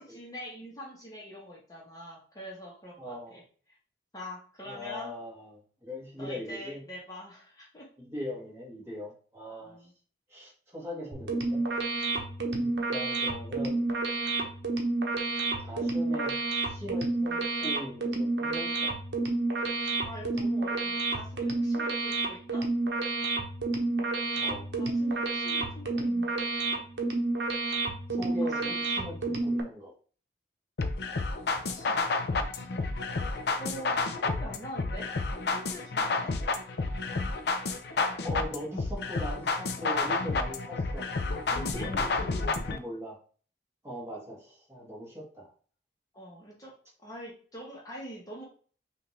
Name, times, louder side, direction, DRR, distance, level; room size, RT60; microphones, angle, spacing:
voice 1, 0.0-3.4 3.7-3.8 4.1-5.1 6.2-7.9 9.6-9.9 20.0-22.7 24.8-26.5 28.4-28.8 31.7-32.1 32.5-32.8 33.6-35.1 35.5-36.3 41.5-41.9 46.1-46.7 47.0-48.4, equal, 20° left, -4 dB, 1.1 m, -44 dB
voice 2, 3.0-3.4 4.6-6.8 8.0-9.8 10.3-11.6 12.5-13.8 15.6-19.0 24.4-24.7 28.1-29.9 38.2-41.1 41.7-43.2 43.8-45.5, equal, 15° right, -5 dB, 1.5 m, -40 dB
sound 1, 11.1-29.6, right 3 dB, 65° right, 0.9 m, -30 dB
sound 2, 30.8-42.8, left 3 dB, 60° left, 0.5 m, -30 dB
5.6 x 2.6 x 3.2 m, 0.42 s
head